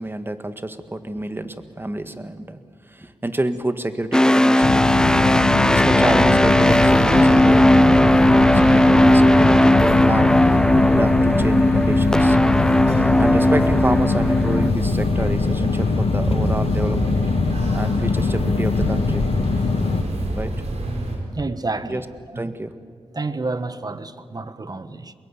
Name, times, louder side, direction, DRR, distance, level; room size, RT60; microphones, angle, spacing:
voice 1, 0.0-2.6 2.9-4.8 5.7-12.5 13.2-17.2 17.7-19.2 20.3-20.5 21.8-22.0 22.3-22.7, right 1 dB, 20° right, 1.7 m, -28 dB
sound 1, 4.1-14.7, left 1 dB, 5° left, 0.7 m, -16 dB
sound 2, 4.6-20.0, left 4 dB, 65° left, 1.4 m, -22 dB
sound 3, 6.0-21.2, right 1 dB, 85° right, 4.8 m, -28 dB
voice 2, 21.3-22.0 22.3-22.5 23.1-25.1, right 3 dB, 35° right, 1.4 m, -29 dB
24.5 x 21.5 x 8.4 m
cardioid pair, 65°, 11 cm